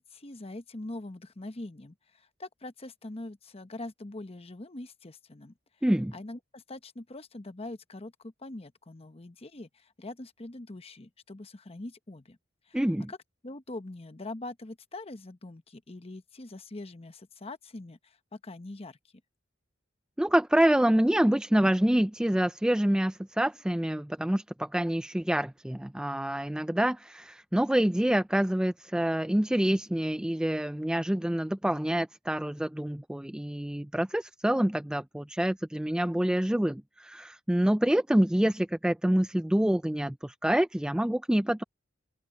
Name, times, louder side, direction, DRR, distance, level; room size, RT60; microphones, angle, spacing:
voice 1, 0.0-5.5 6.1-12.4 12.7-12.8 13.1-13.2 13.4-19.0, left 2 dB, 30° left, 1.0 m, -43 dB
voice 2, 5.8-6.1 12.7-13.1 20.2-41.6, right 1 dB, 5° right, 0.3 m, -26 dB
open air
head